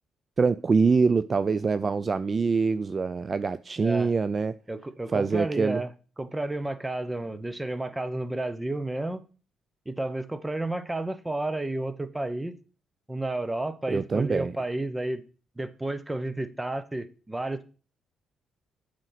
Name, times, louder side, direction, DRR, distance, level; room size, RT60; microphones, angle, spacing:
voice 1, 0.4-4.6 5.1-5.8 13.9-14.5, right 4 dB, 35° right, 0.3 m, -24 dB
voice 2, 3.8-4.1 4.7-5.9 6.2-9.2 9.9-12.6 13.1-15.3 15.6-17.6, right 2 dB, 15° right, 0.9 m, -31 dB
8.1 x 5.1 x 5.7 m
cardioid pair, 90°, 0 cm